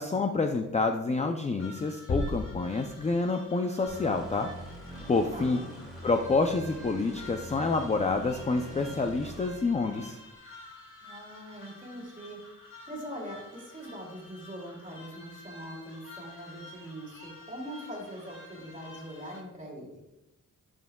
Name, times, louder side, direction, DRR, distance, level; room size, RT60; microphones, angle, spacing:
voice 1, 0.0-4.5 5.1-5.6 6.0-10.2, left 3 dB, 20° left, 5 dB, 0.4 m, -28 dB
sound 1, 1.6-19.4, left 2 dB, 40° left, 2.5 m, -50 dB
sound 2, 2.1-3.5, left 2 dB, 75° left, 1.8 m, -34 dB
sound 3, 3.9-10.3, equal, ahead, 2.4 m, -45 dB
voice 2, 5.3-5.8 11.0-12.4 12.9-20.0, equal, 25° right, -1 dB, 2.5 m, -42 dB
10.5 x 6.3 x 2.2 m, 0.92 s
wide cardioid pair, 125°, 33 cm